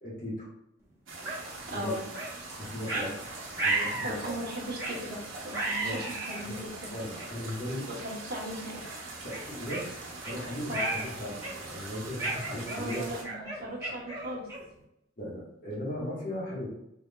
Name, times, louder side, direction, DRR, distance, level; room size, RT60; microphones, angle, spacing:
voice 1, 0.0-0.5 1.7-2.0 2.6-4.3 5.8-6.2 6.4-6.6 6.9-8.1 9.2-9.9 10.2-13.1 15.2-16.7, left 1 dB, 45° left, -5 dB, 1.3 m, -37 dB
sound 1, 1.1-13.2, right 2 dB, 80° right, 0.9 m, -43 dB
sound 2, 1.2-1.4 2.1-2.3 2.9-3.1 3.6-4.2 4.8-5.0 5.5-6.4 7.2-7.3 8.0-8.2 8.6-8.7 9.3-10.4 10.7-11.1 11.4-11.7 12.2-14.8, right 3 dB, 15° right, 1.0 m, -33 dB
voice 2, 4.0-5.2 5.4-6.9 7.9-8.8 10.7-11.0 12.7-14.5, equal, 50° right, -4 dB, 1.0 m, -37 dB
3.6 x 3.4 x 2.2 m, 0.79 s
head